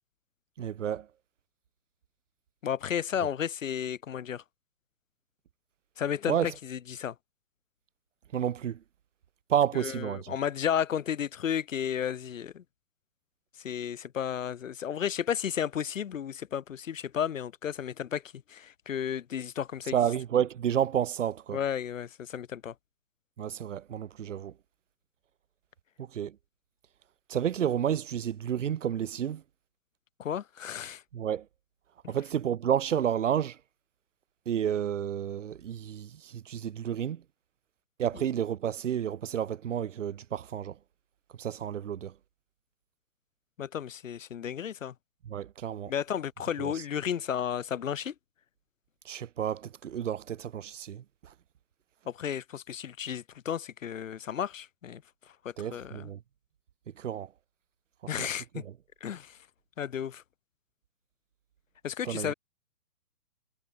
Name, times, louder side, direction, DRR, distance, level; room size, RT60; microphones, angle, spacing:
voice 1, 0.6-1.1 6.3-6.5 8.3-8.8 9.5-10.4 19.9-21.6 23.4-24.5 26.0-26.4 27.3-29.4 31.1-31.4 32.1-33.6 34.4-37.2 38.0-40.7 41.4-42.1 45.2-45.9 46.6-46.8 49.0-51.3 55.6-56.2 57.0-57.3 58.2-58.3 58.5-58.7 62.0-62.3, right 9 dB, 50° right, 3.3 m, -30 dB
voice 2, 2.6-4.4 6.0-7.1 9.7-12.6 13.6-18.2 18.5-20.0 21.5-22.7 30.2-31.0 32.0-32.1 43.6-44.9 45.9-48.1 52.1-55.0 55.4-56.1 58.1-58.6 59.0-59.4 59.8-60.2 61.8-62.3, left 9 dB, 55° left, 4.8 m, -33 dB
hypercardioid pair, 160°, 47 cm